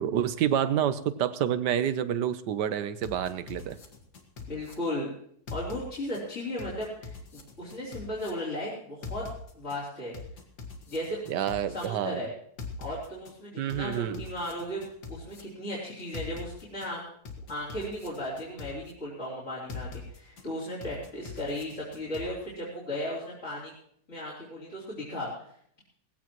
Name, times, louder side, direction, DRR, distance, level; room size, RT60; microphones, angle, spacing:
voice 1, 0.0-3.8 11.3-12.2 13.6-14.2, right 10 dB, 90° right, 13 dB, 1.4 m, -28 dB
sound 1, 3.0-4.7 5.5-6.2 6.6-8.3 9.0-9.8 10.1-11.9 12.6-13.3 13.7-15.4 16.1-16.9 17.3-18.9 19.7-20.4 20.8-22.3, left 5 dB, 75° left, 2.2 m, -42 dB
voice 2, 4.5-5.1 5.5-9.3 9.5-10.1 10.9-11.2 11.7-12.3 12.8-17.0 17.5-23.7 24.1-25.3, left 1 dB, 45° left, -6 dB, 3.9 m, -36 dB
19.0 x 16.0 x 3.1 m, 0.67 s
omnidirectional pair, 1.8 m